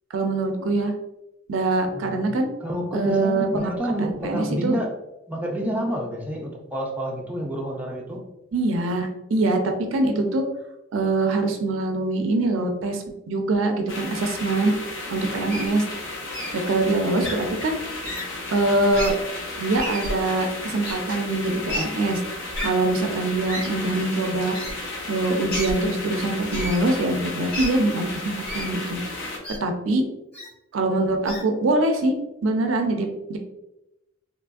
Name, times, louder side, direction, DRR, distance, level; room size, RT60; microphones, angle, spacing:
voice 1, 0.1-0.9 1.5-2.5 2.9-3.7 4.2-4.7 8.5-10.4 10.9-14.7 15.1-15.8 16.5-17.7 18.5-19.1 19.6-22.2 22.6-24.5 25.1-29.0 29.6-30.0 30.7-32.1 32.4-33.4, right 2 dB, 90° right, 4 dB, 0.4 m, -23 dB
voice 2, 1.9-4.9 5.3-8.2, equal, 10° right, -2 dB, 0.5 m, -29 dB
sound 1, 13.9-29.4, left 2 dB, 80° left, 0.6 m, -34 dB
Wild animals, 15.5-15.7 16.3-16.5 17.2-17.3 18.0-18.2 18.9-19.1 19.8-20.1 20.8-20.9 21.7-21.8 22.5-22.7 23.5-23.7 24.5-24.7 25.5-25.7 26.5-26.8 27.5-27.7 28.4-28.7 29.4-29.6 30.3-30.5 31.2-31.4, left 1 dB, 55° left, 1.4 m, -30 dB
2.9 x 2.5 x 2.3 m, 0.91 s
head